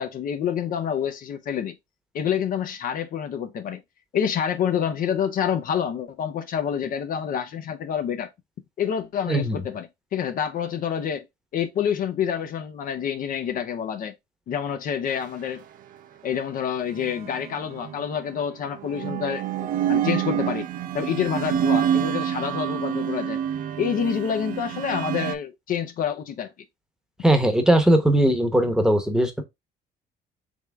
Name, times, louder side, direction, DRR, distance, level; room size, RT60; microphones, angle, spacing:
voice 1, 0.0-1.8 2.1-3.8 4.1-8.3 8.8-11.2 11.5-14.2 14.5-15.6 16.2-20.7 20.9-23.4 23.8-26.5, left 8 dB, 55° left, 0.6 m, -27 dB
voice 2, 9.3-9.6 27.2-29.4, right 1 dB, 5° right, 0.9 m, -19 dB
sound 1, 17.0-17.9 18.8-25.3, right 9 dB, 55° right, 0.5 m, -27 dB
3.6 x 3.3 x 3.4 m
cardioid pair, 110°, 17 cm